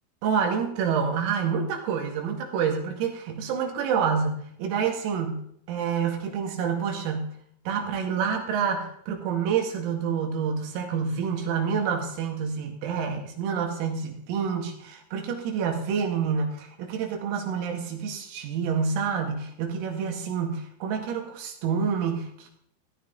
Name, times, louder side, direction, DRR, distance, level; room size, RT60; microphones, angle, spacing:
voice 1, 0.2-7.3 7.7-22.5, right 6 dB, 90° right, 2 dB, 4.8 m, -28 dB
15.0 x 12.5 x 3.9 m, 0.67 s
omnidirectional pair, 5.9 m